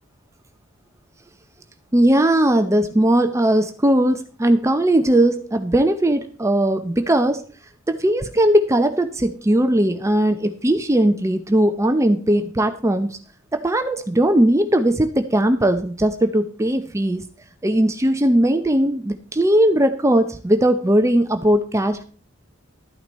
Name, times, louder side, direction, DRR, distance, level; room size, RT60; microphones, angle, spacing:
voice 1, 1.9-7.4 7.9-13.2 13.5-17.2 17.6-22.0, right 1 dB, 15° right, 8 dB, 0.6 m, -18 dB
12.5 x 9.4 x 4.2 m, 0.42 s
head